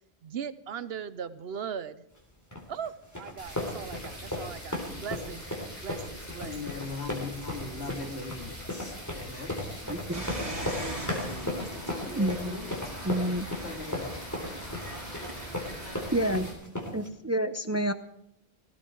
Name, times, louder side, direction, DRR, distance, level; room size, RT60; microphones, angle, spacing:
voice 1, 0.2-2.0 2.7-5.4 5.8-6.8, right 7 dB, 70° right, 1.0 m, -39 dB
sound 1, 2.5-17.1, left 1 dB, 15° left, 3.6 m, -36 dB
sound 2, 3.4-16.5, equal, 40° left, 7.2 m, -44 dB
voice 2, 6.4-9.7 10.4-12.7 13.6-14.3, left 3 dB, 80° left, 2.8 m, -40 dB
voice 3, 9.9-10.2 12.2-12.6 13.0-13.5 16.1-16.5 16.9-17.9, right 1 dB, 20° right, 0.6 m, -28 dB
sound 3, 10.1-16.4, right 1 dB, 40° right, 4.4 m, -40 dB
18.0 x 16.5 x 4.6 m
omnidirectional pair, 1.1 m